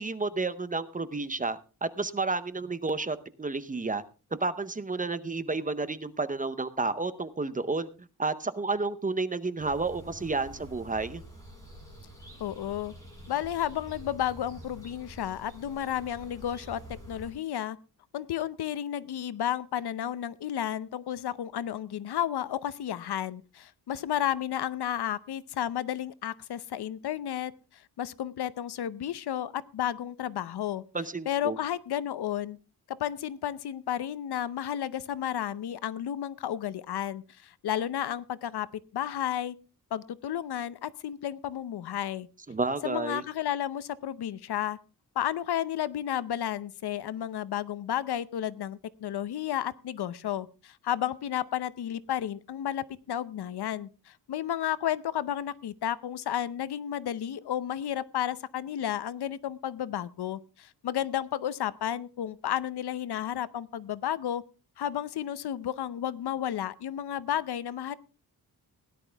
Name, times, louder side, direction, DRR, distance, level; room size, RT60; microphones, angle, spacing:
voice 1, 0.0-4.0 4.4-7.9 8.2-11.2 30.9-31.6 42.5-43.2, right 3 dB, 20° right, 13 dB, 0.7 m, -31 dB
sound 1, 9.6-17.3, equal, 10° left, 7.2 m, -47 dB
voice 2, 12.4-12.9 13.3-17.8 18.1-30.8 31.3-32.6 32.9-38.7 38.9-39.5 39.9-42.3 42.8-44.8 45.2-64.4 64.8-68.0, left 10 dB, 80° left, 17 dB, 0.8 m, -32 dB
17.0 x 11.0 x 3.4 m, 0.34 s
wide cardioid pair, 155°, 39 cm